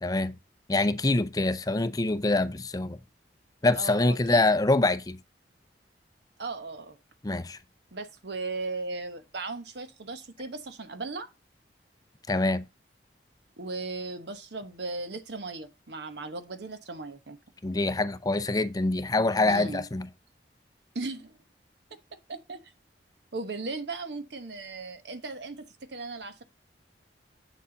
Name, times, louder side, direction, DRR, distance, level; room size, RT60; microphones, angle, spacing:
voice 1, 0.0-0.3 0.7-3.0 3.6-5.2 7.2-7.6 12.3-12.6 17.6-20.1, left 2 dB, 20° left, 0.5 m, -25 dB
voice 2, 3.8-4.4 6.4-7.0 7.9-11.3 13.6-17.4 19.4-19.9 20.9-21.4 22.3-22.7 23.3-26.4, right 3 dB, 70° right, 1.0 m, -37 dB
8.2 x 7.0 x 3.8 m
head